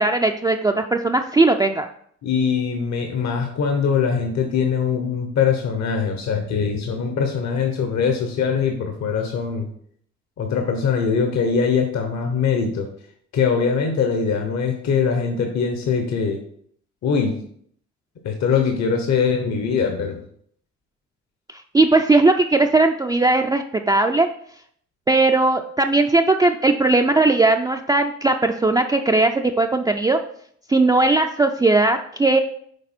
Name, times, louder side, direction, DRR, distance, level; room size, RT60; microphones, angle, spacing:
voice 1, 0.0-1.9 21.7-24.3 25.1-30.2 30.7-32.4, right 2 dB, 15° right, 3 dB, 0.4 m, -18 dB
voice 2, 2.2-9.7 10.4-12.9 13.3-16.4 17.0-17.3 18.2-20.2, left 6 dB, 65° left, 3 dB, 1.1 m, -22 dB
6.7 x 4.1 x 4.3 m, 0.64 s
cardioid pair, 90°, 30 cm